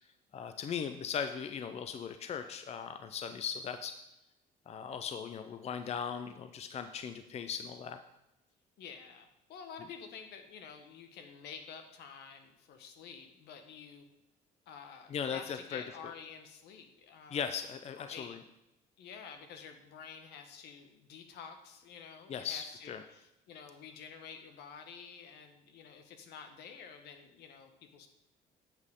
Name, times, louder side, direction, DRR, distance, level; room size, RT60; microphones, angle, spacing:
voice 1, 0.3-4.0 4.7-8.0 15.1-15.8 17.3-18.4 22.3-23.0, left 7 dB, 40° left, 9 dB, 0.6 m, -38 dB
voice 2, 8.8-14.1 14.7-17.4 18.0-18.3 19.0-28.1, left 6 dB, 80° left, 6 dB, 1.3 m, -49 dB
10.5 x 7.6 x 3.7 m, 0.90 s
cardioid pair, 110°, 17 cm